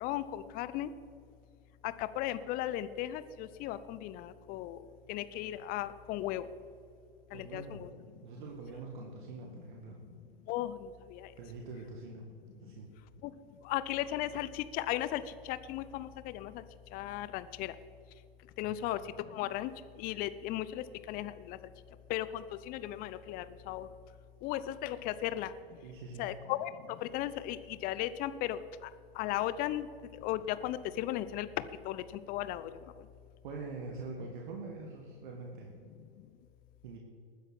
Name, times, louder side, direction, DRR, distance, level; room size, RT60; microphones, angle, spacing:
voice 1, 0.0-0.9 1.8-4.8 5.1-6.4 7.3-7.9 10.5-11.3 13.2-13.3 13.6-16.6 16.9-17.7 18.6-19.0 19.3-19.7 20.0-21.6 22.1-23.9 24.4-25.5 26.2-28.9 29.2-29.9 30.2-31.5 31.8-32.0 32.3-32.7, left 13 dB, 30° left, 14 dB, 0.6 m, -36 dB
voice 2, 7.3-7.8 8.2-10.0 11.4-12.3 12.6-12.9 18.6-18.7 25.8-26.4 33.4-35.7 36.8-37.0, right 3 dB, 55° right, 0 dB, 2.0 m, -44 dB
19.5 x 10.0 x 4.3 m, 2.5 s
figure-of-eight pair, 100°, 30 cm